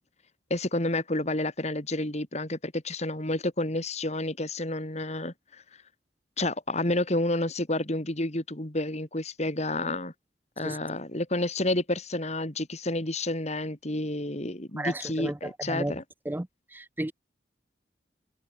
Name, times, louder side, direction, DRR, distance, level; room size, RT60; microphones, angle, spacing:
voice 1, 0.5-5.3 6.4-10.1 10.6-16.0, left 1 dB, 35° left, 2.9 m, -30 dB
voice 2, 14.8-15.9 16.3-16.5 16.7-17.1, right 1 dB, 10° right, 0.5 m, -33 dB
head